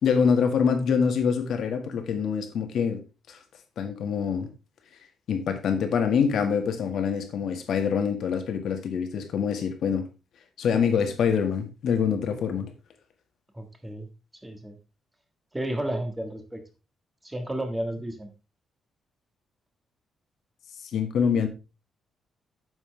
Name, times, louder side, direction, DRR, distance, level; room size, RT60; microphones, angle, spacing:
voice 1, 0.0-3.0 3.3-3.4 3.8-4.5 5.3-10.0 10.6-12.7 20.9-21.5, left 6 dB, 60° left, 1.8 m, -25 dB
voice 2, 13.5-14.1 14.4-14.8 15.5-16.6 17.2-18.3, right 1 dB, 10° right, 1.6 m, -32 dB
9.5 x 7.1 x 3.4 m
cardioid pair, 170°, 0 cm